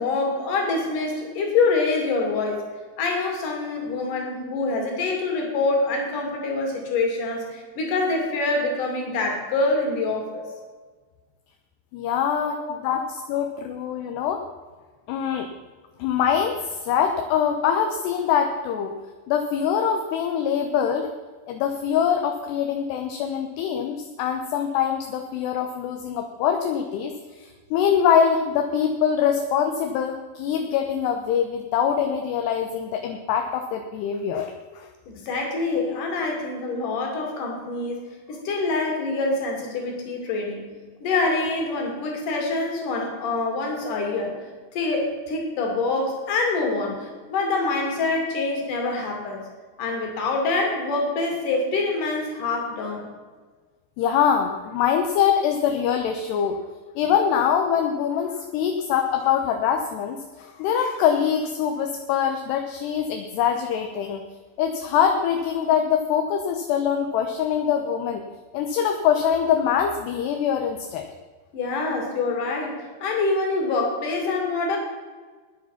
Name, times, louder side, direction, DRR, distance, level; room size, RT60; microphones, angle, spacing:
voice 1, 0.0-2.6 3.0-10.4 12.4-12.7 35.1-40.6 41.0-44.4 44.7-49.4 49.8-53.1 71.5-74.8, left 3 dB, 50° left, 2 dB, 3.8 m, -25 dB
voice 2, 11.9-14.4 15.1-15.5 16.0-18.9 19.3-21.1 21.5-27.1 27.4-34.9 54.0-56.6 57.0-64.2 64.6-68.2 68.5-71.0, left 8 dB, 75° left, 5 dB, 2.7 m, -24 dB
14.0 x 10.0 x 5.8 m, 1.4 s
omnidirectional pair, 5.4 m